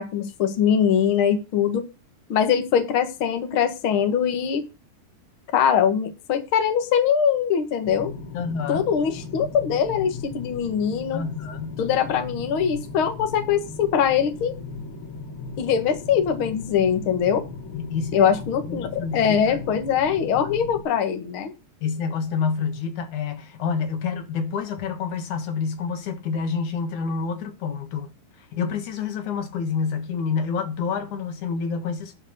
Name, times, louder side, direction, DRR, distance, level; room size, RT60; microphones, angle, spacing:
voice 1, 0.0-1.8 2.3-4.6 5.5-8.1 8.7-11.2 11.8-14.5 15.6-17.4 18.1-21.5, left 8 dB, 90° left, 1.1 m, -22 dB
sound 1, 7.8-20.8, left 4 dB, 40° left, 2.3 m, -37 dB
voice 2, 8.3-8.9 11.1-11.8 17.7-18.4 18.7-19.6 21.8-28.1 28.4-32.2, left 5 dB, 60° left, 2.3 m, -28 dB
12.0 x 4.7 x 7.7 m
omnidirectional pair, 5.1 m